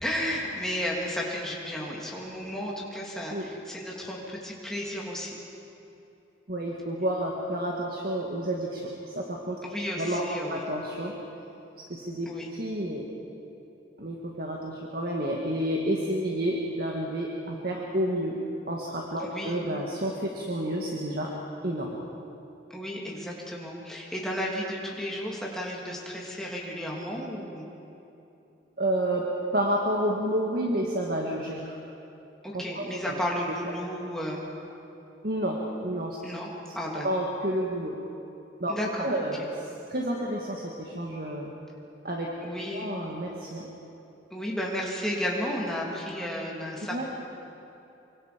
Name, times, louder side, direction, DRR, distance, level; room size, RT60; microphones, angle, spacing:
voice 1, 0.0-5.4 9.6-10.6 12.3-12.5 19.2-19.6 22.7-27.7 32.4-34.5 36.2-37.1 38.7-39.2 42.4-42.9 44.3-47.0, equal, 5° left, -4 dB, 3.0 m, -33 dB
voice 2, 6.5-9.6 10.0-11.1 11.9-13.0 14.0-18.3 18.7-21.3 21.6-22.0 28.8-29.2 29.5-31.8 32.5-32.9 35.2-36.2 37.0-37.9 38.6-38.7 39.0-41.5 42.0-42.3 42.7-43.7 46.9-47.0, right 1 dB, 50° right, -1 dB, 2.0 m, -30 dB
25.0 x 24.0 x 5.2 m, 2.9 s
head